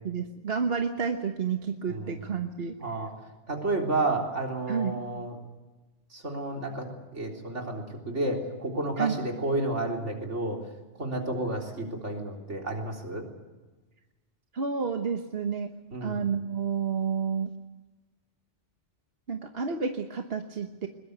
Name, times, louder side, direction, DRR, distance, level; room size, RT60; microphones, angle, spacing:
voice 1, 0.0-2.7 4.7-5.0 9.0-9.2 14.5-15.7 16.0-17.5 19.3-20.9, right 6 dB, 60° right, 5 dB, 1.4 m, -30 dB
voice 2, 1.9-2.2 2.8-3.1 3.5-5.4 6.1-6.9 7.1-10.6 11.0-13.2 15.9-16.2, right 2 dB, 80° right, 1 dB, 4.1 m, -31 dB
21.5 x 21.0 x 8.1 m, 1.2 s
omnidirectional pair, 1.2 m